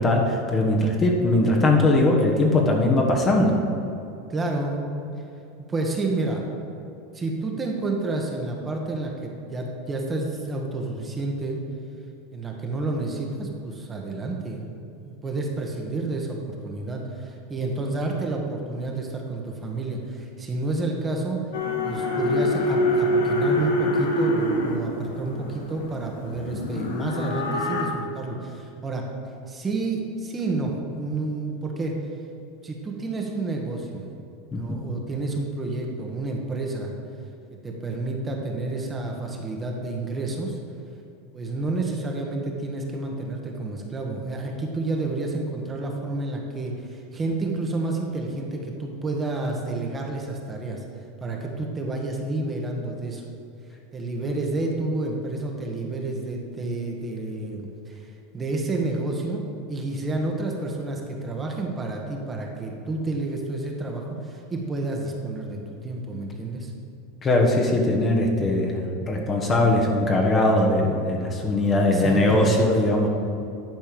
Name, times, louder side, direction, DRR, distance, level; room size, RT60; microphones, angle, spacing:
voice 1, 0.0-3.7 34.5-34.8 67.2-73.1, left 2 dB, 25° left, 1 dB, 1.4 m, -20 dB
voice 2, 4.3-4.8 5.7-6.4 7.1-11.6 12.3-14.6 15.0-21.4 21.8-29.1 29.5-32.0 32.6-34.1 34.5-36.9 37.6-40.6 41.3-50.8 51.2-53.2 53.9-59.4 59.7-66.7 71.9-72.6, right 2 dB, 20° right, 1 dB, 1.4 m, -30 dB
sound 1, 21.5-27.8, left 1 dB, 85° left, 1.3 m, -25 dB
10.5 x 4.4 x 6.9 m, 2.7 s
supercardioid pair, 120°, 0 cm